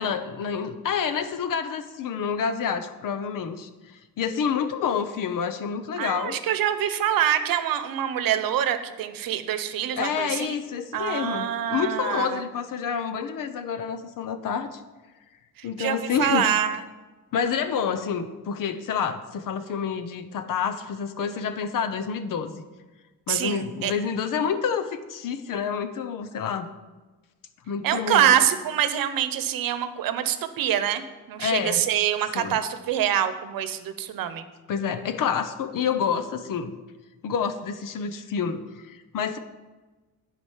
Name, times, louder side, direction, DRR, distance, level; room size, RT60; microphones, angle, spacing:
voice 1, 0.0-6.4 10.0-14.8 15.6-16.8 17.3-22.6 23.3-26.7 27.7-28.3 31.4-31.8 32.3-32.6 34.7-36.8 37.2-39.4, left 7 dB, 70° left, 9 dB, 1.0 m, -28 dB
voice 2, 6.0-10.5 10.9-12.4 15.6-16.8 23.3-23.9 27.8-34.4, right 10 dB, 80° right, 11 dB, 0.9 m, -25 dB
11.0 x 5.0 x 7.3 m, 1.2 s
cardioid pair, 125°, 34 cm